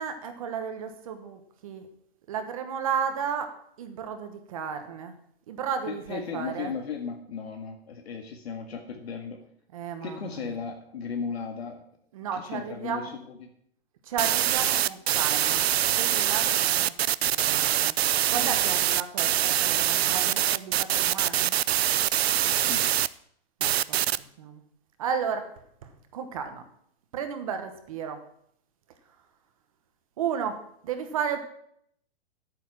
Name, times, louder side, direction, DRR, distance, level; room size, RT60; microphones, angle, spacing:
voice 1, 0.0-1.9 2.3-5.2 5.5-6.7 9.7-10.6 12.1-13.2 14.0-15.7 16.0-16.9 17.2-18.0 18.3-21.5 23.6-24.0 24.4-24.6 25.0-25.5 25.8-26.6 27.1-28.2 30.2-31.4, right 7 dB, 35° right, 7 dB, 1.1 m, -33 dB
voice 2, 5.9-9.4 10.0-11.8 12.4-13.4 18.3-18.6 22.5-22.9, left 5 dB, 75° left, 4 dB, 1.9 m, -36 dB
sound 1, 14.2-23.1 23.6-24.2, right 12 dB, 75° right, 0.5 m, -24 dB
10.5 x 8.8 x 5.9 m, 0.68 s
hypercardioid pair, 175°, 31 cm